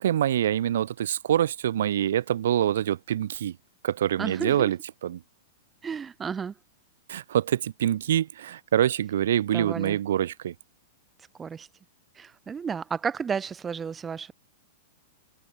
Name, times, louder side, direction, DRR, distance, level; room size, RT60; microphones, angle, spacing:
voice 1, 0.0-3.5 3.8-4.8 5.0-5.2 7.1-10.5, right 11 dB, 70° right, 1.0 m, -25 dB
voice 2, 4.2-4.7 5.8-6.6 9.5-10.0 11.3-11.7 12.1-14.3, right 6 dB, 10° right, 3.7 m, -32 dB
supercardioid pair, 175°, 0 cm